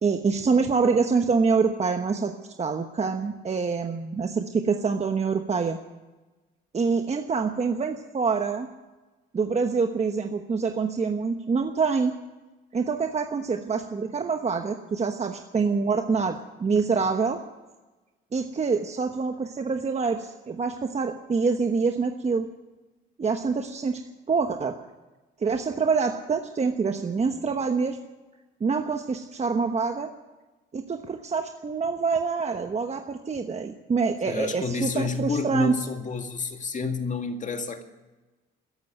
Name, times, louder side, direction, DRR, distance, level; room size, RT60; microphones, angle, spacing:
voice 1, 0.0-2.3 2.6-5.8 6.7-8.7 9.3-12.1 12.7-17.4 18.3-22.5 23.2-24.0 24.3-24.8 25.4-28.0 28.6-30.1 30.7-35.8, right 5 dB, 35° right, 6 dB, 1.1 m, -26 dB
voice 2, 34.3-37.8, left 4 dB, 40° left, 6 dB, 2.0 m, -29 dB
13.5 x 11.0 x 9.3 m, 1.2 s
cardioid pair, 90°, 20 cm